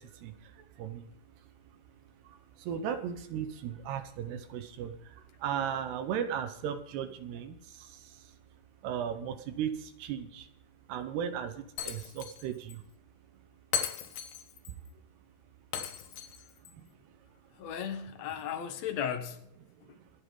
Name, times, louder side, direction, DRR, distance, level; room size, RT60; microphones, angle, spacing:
voice 1, 0.0-8.4 8.8-10.5 10.9-12.8 14.7-15.0 16.6-17.5 19.7-20.1, right 8 dB, 80° right, 3.1 m, -38 dB
Shatter, 11.8-12.4 12.7-12.8 13.7-14.7 15.7-16.7, left 9 dB, 80° left, 3.4 m, -36 dB
voice 2, 17.5-19.4 19.9-20.0, left 8 dB, 60° left, 1.8 m, -36 dB
26.0 x 8.8 x 3.9 m
omnidirectional pair, 4.8 m